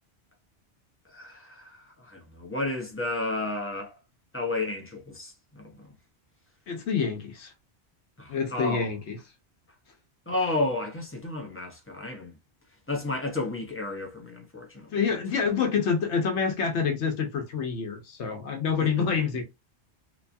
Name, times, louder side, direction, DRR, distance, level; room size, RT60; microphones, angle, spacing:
voice 1, 1.1-4.0 4.3-5.9 8.2-8.9 10.3-12.4 12.9-15.0 18.8-19.0, left 2 dB, 15° left, 0.6 m, -32 dB
voice 2, 6.7-7.5 8.3-9.2 14.9-19.4, left 6 dB, 80° left, 1.0 m, -27 dB
2.9 x 2.3 x 2.5 m
omnidirectional pair, 1.1 m